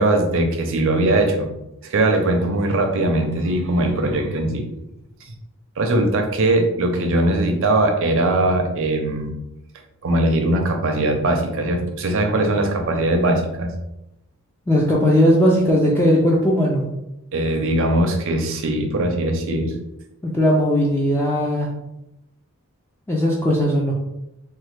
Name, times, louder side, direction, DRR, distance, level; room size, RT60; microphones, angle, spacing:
voice 1, 0.0-1.5 1.8-4.7 5.8-9.3 10.0-13.7 17.3-19.7, right 1 dB, 65° right, 4 dB, 0.5 m, -20 dB
voice 2, 14.7-16.8 20.2-21.7 23.1-23.9, equal, 10° left, -4 dB, 0.3 m, -18 dB
3.2 x 2.2 x 3.1 m, 0.88 s
head